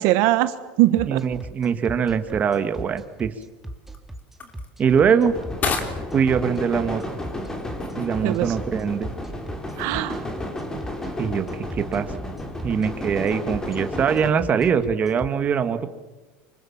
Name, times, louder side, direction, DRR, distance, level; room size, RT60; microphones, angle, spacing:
voice 1, 0.0-1.2 8.2-8.6 9.8-10.2, right 15 dB, 65° right, 12 dB, 1.3 m, -21 dB
sound 1, 1.0-15.3, right 1 dB, 5° right, 2.2 m, -37 dB
voice 2, 1.1-3.3 4.8-5.3 6.1-7.0 8.0-9.1 11.2-12.1 12.6-15.9, right 7 dB, 30° right, 9 dB, 1.7 m, -22 dB
sound 2, 1.3-10.5, left 5 dB, 30° left, 3.4 m, -37 dB
sound 3, 5.3-14.3, left 1 dB, 10° left, 3.6 m, -32 dB
25.0 x 24.5 x 7.3 m, 1.2 s
supercardioid pair, 130°, 5 cm